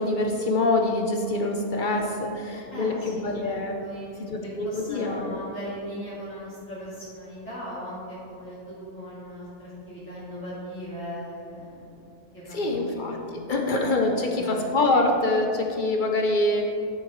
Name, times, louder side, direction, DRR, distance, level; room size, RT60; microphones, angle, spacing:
voice 1, 0.0-3.8 4.3-5.4 12.5-13.2 13.5-16.8, left 2 dB, 60° left, 2 dB, 0.5 m, -25 dB
voice 2, 2.7-12.0 12.3-13.6 14.1-14.7, equal, 10° left, -11 dB, 1.8 m, -39 dB
9.9 x 6.5 x 3.1 m, 2.7 s
omnidirectional pair, 1.6 m